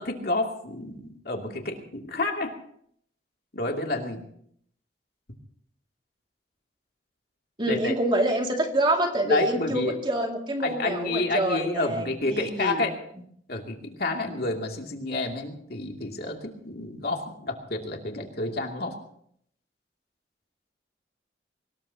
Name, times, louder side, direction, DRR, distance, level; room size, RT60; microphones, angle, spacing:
voice 1, 0.0-2.5 3.5-4.2 7.7-7.9 9.2-10.0 10.6-12.9 13.5-18.9, left 2 dB, 55° left, 1 dB, 2.6 m, -29 dB
voice 2, 7.6-12.9, right 1 dB, 25° right, 2 dB, 2.4 m, -26 dB
24.5 x 19.5 x 2.9 m, 0.66 s
head